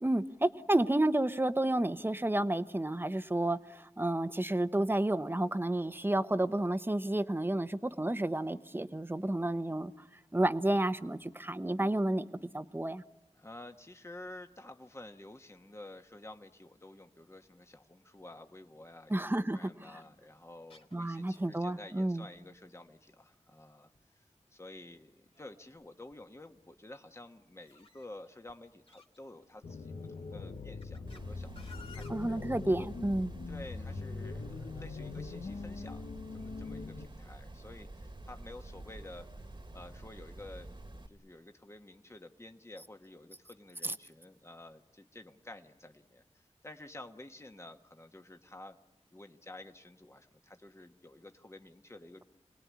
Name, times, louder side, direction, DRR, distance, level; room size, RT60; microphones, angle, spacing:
voice 1, 0.0-9.9 10.3-12.3 12.5-13.0 19.1-19.9 20.9-22.3 32.1-33.3 43.8-43.9, right 1 dB, 20° right, 11 dB, 1.0 m, -31 dB
voice 2, 13.3-24.2 24.5-32.4 33.5-40.8 41.1-48.8 49.1-52.2, left 2 dB, 25° left, 5 dB, 1.3 m, -51 dB
sound 1, 19.8-20.1 20.7-21.4 21.7-21.8 22.0-22.1 22.4-22.9 24.0-24.1 24.7-25.9 26.1-26.5 27.6-29.7 30.5-31.2 31.6-32.1, left 4 dB, 55° left, 2.0 m, -57 dB
sound 2, 29.6-37.1, left 4 dB, 85° left, 1.2 m, -42 dB
sound 3, 31.1-41.1, right 2 dB, 40° right, 1.7 m, -48 dB
26.5 x 19.0 x 9.6 m, 1.2 s
cardioid pair, 50°, 12 cm